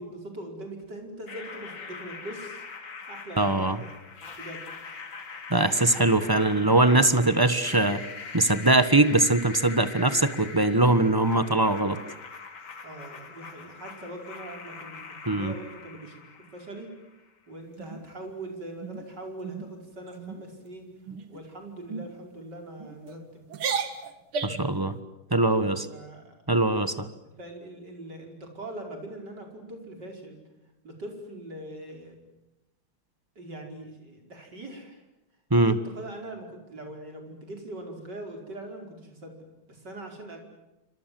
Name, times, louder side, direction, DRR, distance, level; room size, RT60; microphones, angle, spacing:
voice 1, 0.0-2.6 3.1-3.9 4.4-4.6 6.2-7.2 12.8-16.2 16.5-16.9 17.5-20.9 21.3-23.4 25.3-26.3 26.7-26.8 27.4-30.4 30.8-32.2 33.4-35.0 35.6-40.4, right 1 dB, 50° right, 3 dB, 5.6 m, -42 dB
sound 1, 1.3-17.2, left 5 dB, 65° left, 3.1 m, -42 dB
voice 2, 3.4-3.8 5.5-8.0 8.3-12.0 15.3-15.5 24.4-24.9 25.3-25.8 26.5-27.1 35.5-35.7, right 2 dB, 15° right, 11 dB, 1.1 m, -22 dB
sound 2, 17.8-18.4 18.8-19.1 19.4-19.7 20.1-20.4 21.0-21.4 21.9-22.1 22.8-23.2 23.5-24.7, right 5 dB, 80° right, 2.7 m, -34 dB
28.0 x 25.5 x 7.7 m, 0.97 s
omnidirectional pair, 2.3 m